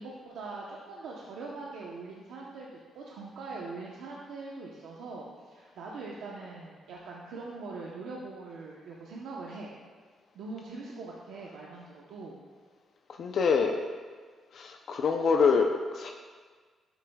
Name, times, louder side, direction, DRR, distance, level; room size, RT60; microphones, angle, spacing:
voice 1, 0.0-9.7 10.3-12.4, right 3 dB, 85° right, -3 dB, 0.9 m, -42 dB
voice 2, 13.2-13.8 14.5-16.1, left 5 dB, 60° left, 3 dB, 0.6 m, -25 dB
11.0 x 8.2 x 2.4 m, 1.5 s
cardioid pair, 115°, 0 cm